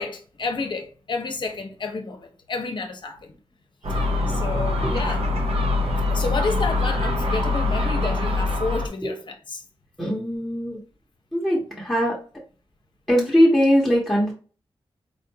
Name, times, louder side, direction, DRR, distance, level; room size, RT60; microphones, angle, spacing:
voice 1, 0.0-3.3 4.3-5.3 6.1-9.6, left 3 dB, 50° left, 0.7 m, -30 dB
Gull seagull, 3.8-8.9, left 2 dB, 90° right, 0.7 m, -23 dB
voice 2, 10.0-10.8 11.3-12.2 13.1-14.3, equal, ahead, 0.9 m, -20 dB
4.3 x 2.5 x 2.7 m
wide cardioid pair, 150°, 10 cm